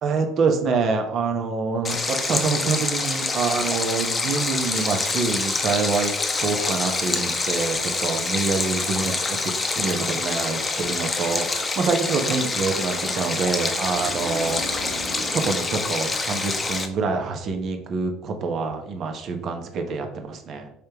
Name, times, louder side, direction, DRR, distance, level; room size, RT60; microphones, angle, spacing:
voice 1, 0.0-14.9 15.3-20.7, right 4 dB, 50° right, 5 dB, 0.8 m, -26 dB
Stream, 1.8-16.9, left 3 dB, 25° left, 0.6 m, -26 dB
sound 1, 13.4-16.8 17.2-17.6, right 1 dB, 75° right, 1.6 m, -38 dB
5.0 x 3.3 x 2.9 m, 0.75 s
hypercardioid pair, 70°, 0 cm